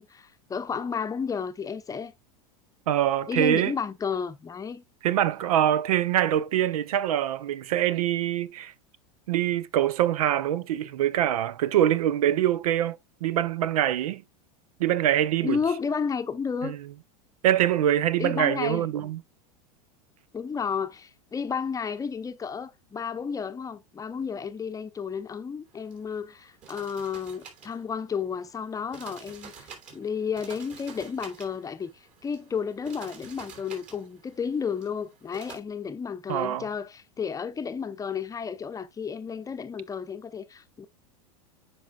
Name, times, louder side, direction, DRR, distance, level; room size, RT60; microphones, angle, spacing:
voice 1, 0.0-2.1 3.3-4.8 15.4-16.8 18.2-19.1 20.3-31.9 32.2-40.9, left 6 dB, 20° left, 0.7 m, -32 dB
voice 2, 2.9-3.7 5.0-8.7 9.3-14.2 14.8-15.6 16.6-16.8 17.4-19.2 36.3-36.7, right 11 dB, 85° right, 0.6 m, -24 dB
sound 1, 25.7-35.6, right 6 dB, 45° right, 3.1 m, -49 dB
9.3 x 5.0 x 2.3 m
hypercardioid pair, 110°, 19 cm